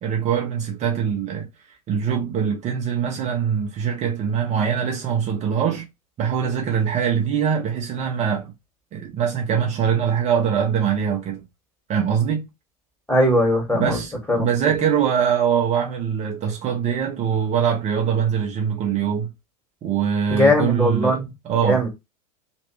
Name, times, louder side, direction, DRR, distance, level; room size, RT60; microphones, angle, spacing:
voice 1, 0.0-1.5 1.9-5.9 6.2-8.5 8.9-11.4 11.9-12.4 13.7-19.3 19.8-21.8, right 7 dB, 35° right, 1.0 m, -23 dB
voice 2, 13.1-14.0 14.3-14.5 20.3-21.3 21.6-21.9, left 1 dB, 10° left, 2.2 m, -19 dB
3.1 x 3.1 x 3.1 m
hypercardioid pair, 85°, 19 cm